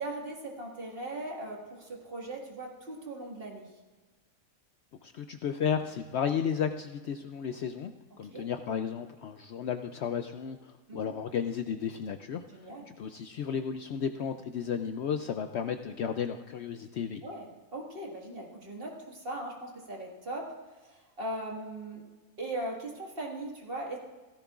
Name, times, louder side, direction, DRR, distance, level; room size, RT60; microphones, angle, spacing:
voice 1, 0.0-3.7 8.3-8.5 10.9-11.1 12.5-12.9 17.2-20.5 20.8-22.0 22.4-24.0, right 1 dB, 45° right, -1 dB, 2.0 m, -39 dB
voice 2, 5.0-7.9 8.2-12.4 13.0-17.2, left 7 dB, 65° left, 7 dB, 0.7 m, -33 dB
16.5 x 14.0 x 2.4 m, 1.3 s
omnidirectional pair, 1.4 m